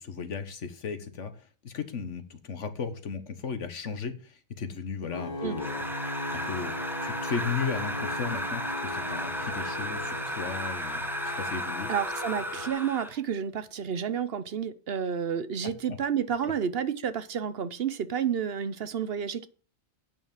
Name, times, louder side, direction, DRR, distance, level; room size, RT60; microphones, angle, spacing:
voice 1, 0.0-1.3 1.6-5.9 6.4-6.7 7.0-11.9 15.9-16.0 16.4-16.5, left 6 dB, 70° left, 1.5 m, -35 dB
sound 1, 5.1-12.7, left 2 dB, 30° left, 2.9 m, -38 dB
sound 2, 5.6-13.2, equal, ahead, 1.1 m, -34 dB
voice 2, 11.9-19.5, right 8 dB, 55° right, 0.9 m, -30 dB
8.7 x 6.2 x 7.3 m
omnidirectional pair, 1.3 m